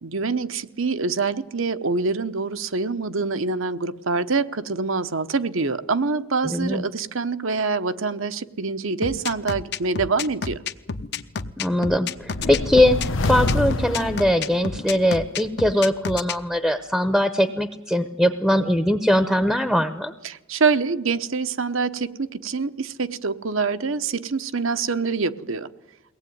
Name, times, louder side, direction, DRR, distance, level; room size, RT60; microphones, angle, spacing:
voice 1, 0.0-10.6 20.2-25.7, right 4 dB, 75° right, 10 dB, 1.0 m, -25 dB
voice 2, 6.5-6.8 11.6-20.1, left 1 dB, ahead, 10 dB, 0.8 m, -21 dB
sound 1, 9.0-16.4, left 5 dB, 50° left, 0.9 m, -30 dB
sound 2, 12.3-15.0, left 2 dB, 70° left, 1.1 m, -26 dB
23.0 x 18.0 x 9.4 m, 1.0 s
head